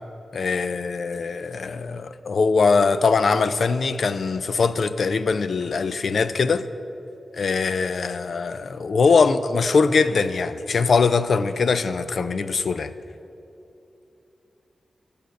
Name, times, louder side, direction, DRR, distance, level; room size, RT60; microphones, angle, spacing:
voice 1, 0.3-6.6 7.3-12.9, left 4 dB, 60° left, 12 dB, 0.4 m, -22 dB
14.0 x 6.7 x 6.4 m, 2.9 s
wide cardioid pair, 145°, 0 cm